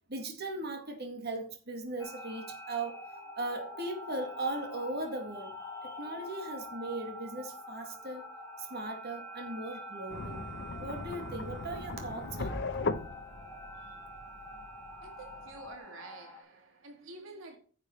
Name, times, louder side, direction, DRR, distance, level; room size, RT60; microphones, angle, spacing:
voice 1, 0.1-3.0 3.4-8.3 8.6-10.4 10.8-12.7, right 2 dB, 55° right, 2.2 m, -38 dB
sound 1, 2.0-16.4, equal, 15° left, 2.1 m, -46 dB
sound 2, 10.1-15.7, left 3 dB, 60° left, 0.8 m, -39 dB
voice 2, 15.0-17.6, right 3 dB, 75° right, 1.9 m, -49 dB
10.5 x 6.8 x 4.5 m
head